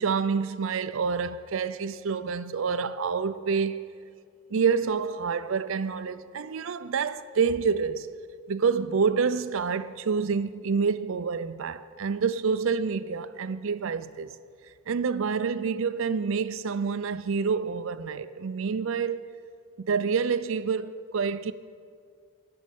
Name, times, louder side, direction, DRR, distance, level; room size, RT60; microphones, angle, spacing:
voice 1, 0.0-3.9 4.5-8.1 8.5-14.3 14.9-19.2 19.9-21.5, right 5 dB, 60° right, 0.4 m, -27 dB
13.5 x 5.3 x 9.3 m
head